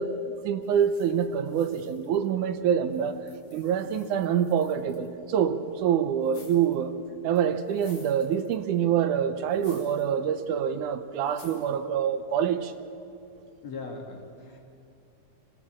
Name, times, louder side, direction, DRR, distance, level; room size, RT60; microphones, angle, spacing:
voice 1, 0.0-3.2 3.5-6.9 7.2-12.7, right 8 dB, 80° right, 10 dB, 2.3 m, -26 dB
sound 1, 0.6-2.5 2.9-5.1 6.2-6.8 7.4-8.8 9.5-10.1 10.4-10.5 11.3-11.8, left 3 dB, 80° left, 5.0 m, -55 dB
voice 2, 13.6-14.6, left 3 dB, 60° left, 1 dB, 3.5 m, -39 dB
26.5 x 16.5 x 7.4 m, 2.7 s
omnidirectional pair, 3.7 m